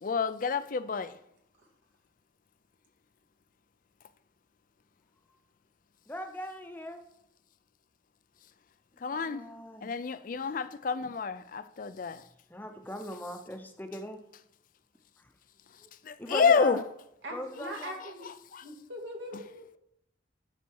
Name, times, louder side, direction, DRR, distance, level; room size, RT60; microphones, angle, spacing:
voice 1, 0.0-1.2 9.0-9.4 9.8-12.2 16.0-16.8 17.6-17.9 18.5-18.6, left 5 dB, 45° left, 0.4 m, -29 dB
voice 2, 6.1-7.0 9.1-9.9 12.5-14.2 15.2-15.3 15.8-15.9 16.2-16.8 17.3-18.0, left 1 dB, 10° left, 0.8 m, -39 dB
voice 3, 17.2-18.3 18.6-19.8, equal, 85° right, 2.2 m, -41 dB
12.0 x 4.2 x 4.6 m
head